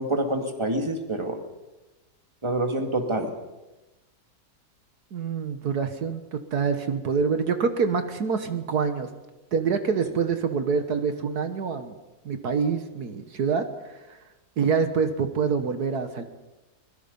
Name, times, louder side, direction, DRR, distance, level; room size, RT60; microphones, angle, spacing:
voice 1, 0.0-1.4 2.4-3.3, right 1 dB, 15° right, 4 dB, 2.3 m, -26 dB
voice 2, 5.1-9.1 9.5-11.9 12.3-14.2 14.6-16.2, right 5 dB, 70° right, 8 dB, 1.8 m, -26 dB
23.5 x 22.0 x 5.5 m, 1.1 s
omnidirectional pair, 1.7 m